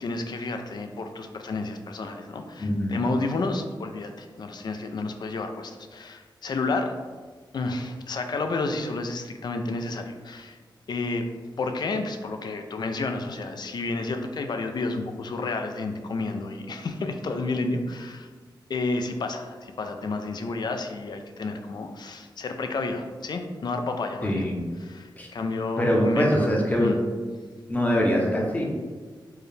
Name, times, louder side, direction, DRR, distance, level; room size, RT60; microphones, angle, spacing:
voice 1, 0.0-6.9 7.5-10.6 10.9-11.3 11.6-18.3 18.7-24.5 24.8-26.5 26.8-27.0, left 3 dB, 60° left, 6 dB, 0.4 m, -30 dB
voice 2, 2.6-3.0 24.2-24.6 25.2-25.3 25.8-26.9 27.7-28.6, equal, 20° left, -2 dB, 0.7 m, -23 dB
4.5 x 2.1 x 3.2 m, 1.5 s
wide cardioid pair, 105°, 8 cm